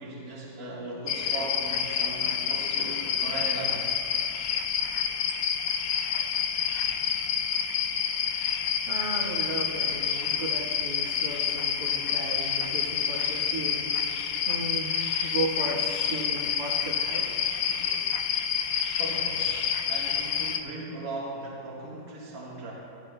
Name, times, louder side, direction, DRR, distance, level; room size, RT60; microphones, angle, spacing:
voice 1, 0.0-3.9 17.5-18.1 19.0-22.7, right 2 dB, 55° right, -5 dB, 1.9 m, -38 dB
sound 1, 1.1-20.6, left 7 dB, 65° left, 0.9 m, -28 dB
voice 2, 8.5-17.3, right 2 dB, 70° right, -6 dB, 2.2 m, -35 dB
17.0 x 13.0 x 2.2 m, 2.9 s
omnidirectional pair, 1.8 m